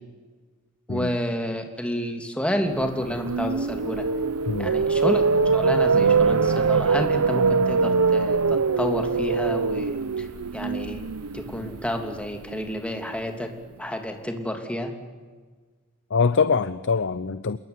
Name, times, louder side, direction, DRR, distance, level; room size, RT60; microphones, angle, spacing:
voice 1, 0.9-4.1 4.6-5.2 5.5-10.3 10.5-11.1 11.3-13.5 13.8-14.9, equal, 5° left, 4 dB, 2.9 m, -30 dB
sound 1, 2.9-13.0, right 4 dB, 85° right, 0.9 m, -23 dB
voice 2, 16.1-17.6, left 5 dB, 55° left, 14 dB, 0.7 m, -23 dB
26.5 x 22.5 x 9.7 m, 1.4 s
head